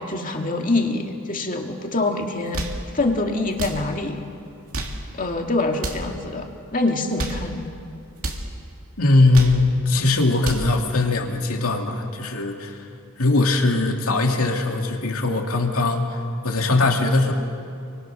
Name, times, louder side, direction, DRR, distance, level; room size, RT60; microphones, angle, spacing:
voice 1, 0.0-2.6 2.9-4.2 5.1-7.7, left 2 dB, 40° left, 2 dB, 2.3 m, -25 dB
sound 1, 2.3-2.8 3.5-3.8 4.5-5.0 5.7-6.1 7.0-7.5 8.2-8.5 9.1-9.6 10.2-10.7, right 1 dB, 70° right, 2.7 m, -30 dB
voice 2, 9.0-12.8 13.2-16.2 16.4-17.3, left 2 dB, 75° left, 2 dB, 2.6 m, -20 dB
29.0 x 23.0 x 6.4 m, 2.4 s
head